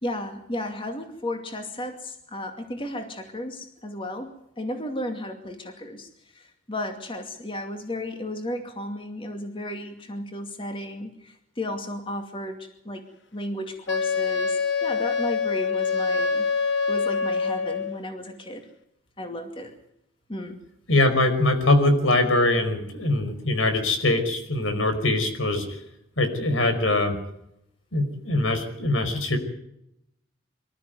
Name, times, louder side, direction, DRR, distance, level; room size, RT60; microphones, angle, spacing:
voice 1, 0.0-4.3 4.6-16.5 16.9-18.7 19.2-19.7 20.3-20.6 21.0-21.1, left 1 dB, 25° left, 5 dB, 2.4 m, -34 dB
Wind instrument woodwind instrument, 13.9-18.0, left 5 dB, 60° left, 1.5 m, -25 dB
voice 2, 20.9-25.8 26.2-27.2 27.9-29.4, left 2 dB, 85° left, 7 dB, 5.0 m, -22 dB
25.0 x 13.5 x 9.5 m, 0.78 s
head